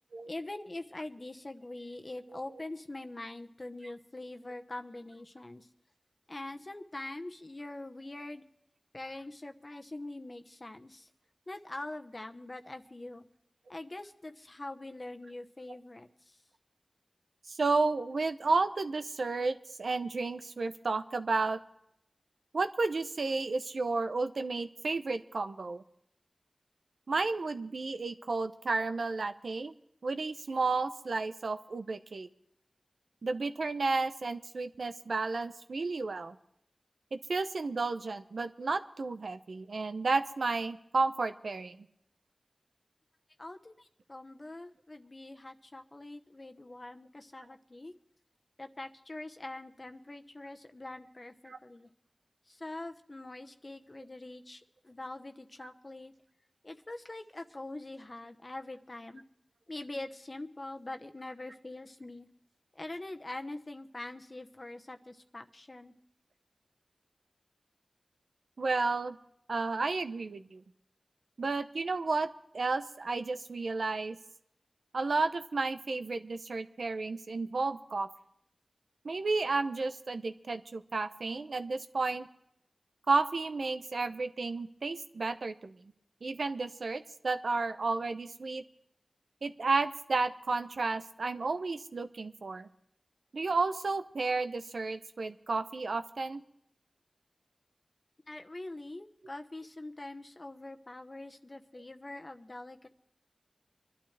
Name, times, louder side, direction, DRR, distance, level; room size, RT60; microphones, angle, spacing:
voice 1, 0.3-5.7 6.3-8.4 8.9-11.1 11.5-13.3 13.7-16.4 43.4-47.9 48.6-51.9 52.5-56.1 56.6-59.2 59.7-62.3 62.7-65.9 98.3-102.9, left 2 dB, 40° left, 6 dB, 1.0 m, -44 dB
voice 2, 17.5-21.6 22.5-25.8 27.1-29.7 30.0-32.3 33.2-36.4 37.1-41.9 51.5-51.6 55.6-55.7 68.6-69.2 69.5-70.6 71.4-72.3 72.5-74.2 74.9-78.1 79.0-82.3 83.1-85.9 86.2-88.6 89.4-92.7 93.3-96.4, right 3 dB, 90° right, 9 dB, 0.7 m, -32 dB
24.5 x 12.0 x 3.3 m, 0.76 s
wide cardioid pair, 65°, 0 cm